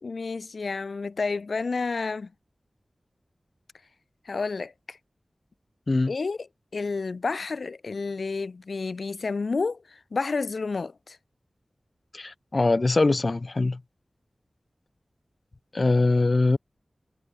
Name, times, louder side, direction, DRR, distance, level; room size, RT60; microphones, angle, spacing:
voice 1, 0.0-2.3 4.2-5.0 6.1-6.5 6.7-11.2, left 4 dB, 80° left, 4.7 m, -30 dB
voice 2, 12.1-13.8 15.7-16.6, left 3 dB, 55° left, 2.8 m, -22 dB
cardioid pair, 45°, 0 cm